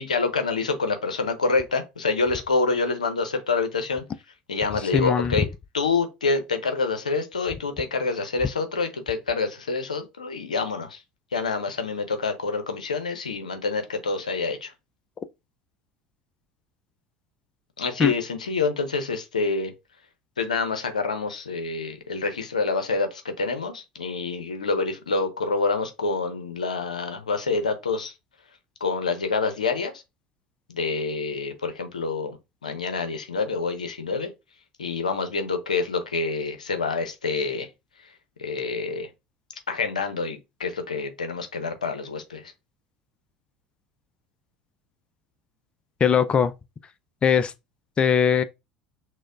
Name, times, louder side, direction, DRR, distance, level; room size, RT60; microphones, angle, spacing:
voice 1, 0.0-4.0 4.5-5.5 5.7-11.0 11.3-14.7 17.8-19.7 20.4-28.1 28.8-29.9 30.7-32.4 32.6-34.3 34.8-37.7 38.4-39.1 39.7-42.5, left 4 dB, 85° left, 0.6 m, -27 dB
voice 2, 4.9-5.3 18.0-18.1 46.0-46.5 47.2-47.5 48.0-48.4, left 7 dB, 25° left, 0.3 m, -20 dB
6.1 x 2.0 x 2.4 m
figure-of-eight pair, 70°, 4 cm